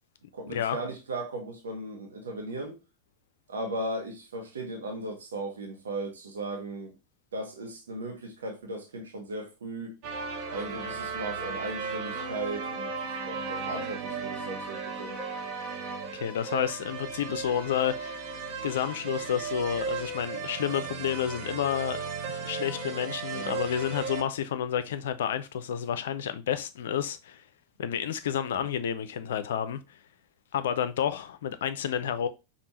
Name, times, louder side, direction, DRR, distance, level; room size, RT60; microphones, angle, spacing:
voice 1, 0.3-2.8 3.5-6.9 7.3-10.0 10.5-15.2 23.3-23.6, right 2 dB, 65° right, 1.0 m, -37 dB
sound 1, 10.0-24.2, right 4 dB, 45° right, 0.8 m, -35 dB
voice 2, 16.1-18.3 18.6-27.4 27.8-30.0 30.5-32.3, left 9 dB, 60° left, 0.4 m, -30 dB
5.2 x 2.4 x 3.0 m
figure-of-eight pair, 90°, 0 cm